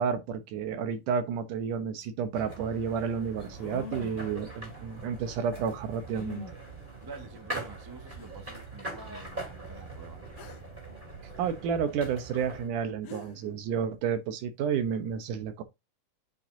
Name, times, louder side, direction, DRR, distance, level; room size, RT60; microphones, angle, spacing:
voice 1, 0.0-6.4 11.4-15.6, right 7 dB, 75° right, 2.5 m, -31 dB
sound 1, 2.0-2.1 3.5-4.4 6.1-6.6 7.5-7.6 8.2-8.3 10.4-10.7 12.7-12.8 13.0-13.5, left 6 dB, 55° left, 2.0 m, -44 dB
sound 2, 2.3-12.7, right 2 dB, 15° right, 4.0 m, -42 dB
voice 2, 7.0-10.6, right 4 dB, 35° right, 0.3 m, -48 dB
8.3 x 6.5 x 2.8 m
omnidirectional pair, 3.8 m